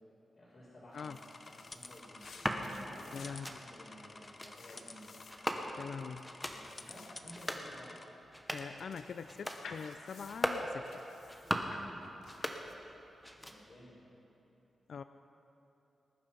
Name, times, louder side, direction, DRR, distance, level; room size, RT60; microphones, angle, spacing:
voice 1, 0.3-1.1 1.4-2.3 2.7-5.1 6.3-7.9 13.4-14.0, equal, 45° left, -10 dB, 3.4 m, -54 dB
sound 1, 0.9-13.0, left 4 dB, 85° left, 1.0 m, -56 dB
sound 2, 0.9-8.1, left 3 dB, 30° left, 0.7 m, -52 dB
sound 3, 2.2-2.6 3.2-3.6 4.2-4.5 5.3-5.9 6.2-6.6 7.2-7.7 8.2-8.8 9.2-9.6 10.2-10.7 11.2-11.8 12.2-13.0 13.2-13.8, equal, ahead, 0.9 m, -38 dB
voice 2, 3.1-3.6 5.8-6.3 8.5-11.0 14.9-15.0, left 6 dB, 60° left, 10 dB, 0.3 m, -43 dB
19.5 x 11.0 x 5.3 m, 3.0 s
wide cardioid pair, 170°, 0 cm